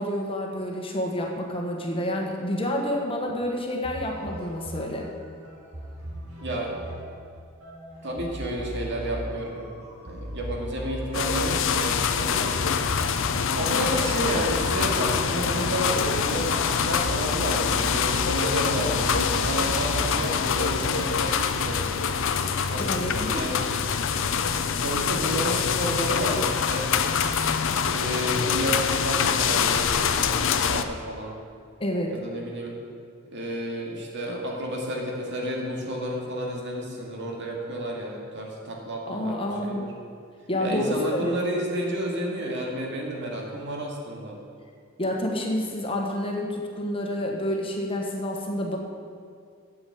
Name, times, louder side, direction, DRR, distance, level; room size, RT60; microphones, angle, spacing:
voice 1, 0.0-5.1 22.8-23.5 31.8-32.2 39.1-39.8 40.5-41.4 45.0-48.8, left 1 dB, 25° left, 0 dB, 1.3 m, -29 dB
sound 1, 3.8-21.1, equal, 90° right, 3.1 m, -38 dB
voice 2, 6.4-6.8 8.0-9.6 10.0-12.5 13.5-22.0 22.7-23.7 24.8-26.9 27.9-31.3 32.1-32.7 33.3-39.9 40.6-44.4, right 1 dB, 60° right, -1 dB, 2.2 m, -31 dB
sound 2, 11.1-30.8, left 6 dB, 65° left, 0.6 m, -25 dB
8.7 x 7.3 x 8.4 m, 2.2 s
head